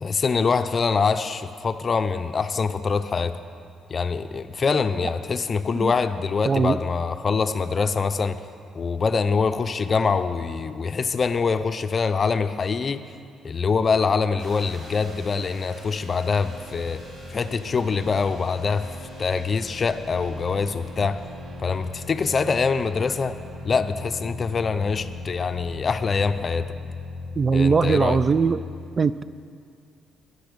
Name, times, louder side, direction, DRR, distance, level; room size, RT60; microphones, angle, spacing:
voice 1, 0.0-3.4 3.9-8.4 8.7-13.0 13.4-17.0 17.3-18.9 19.2-21.2 21.6-23.4 23.6-26.7 27.5-28.2, left 5 dB, 40° left, 10 dB, 0.5 m, -24 dB
voice 2, 6.4-6.8 27.4-28.6 29.0-29.2, right 5 dB, 35° right, 15 dB, 0.3 m, -20 dB
sound 1, 14.4-28.7, left 2 dB, 80° right, 3.0 m, -38 dB
13.5 x 10.0 x 5.2 m, 2.3 s
cardioid pair, 90°, 0 cm